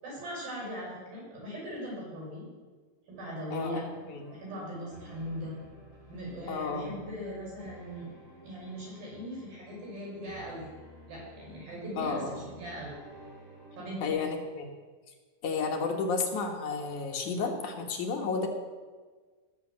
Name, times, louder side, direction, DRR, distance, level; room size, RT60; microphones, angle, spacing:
voice 1, 0.0-2.5 3.1-3.8 4.4-5.6 6.1-8.1 8.4-10.7 11.1-12.9 13.8-14.1, equal, 85° right, -4 dB, 7.7 m, -39 dB
voice 2, 3.5-4.3 6.5-6.9 12.0-12.4 14.0-14.7 15.4-18.5, left 4 dB, 65° left, 2 dB, 2.6 m, -32 dB
sound 1, 3.5-14.1, equal, 30° left, 6.0 m, -52 dB
17.5 x 7.0 x 7.2 m, 1.4 s
omnidirectional pair, 4.1 m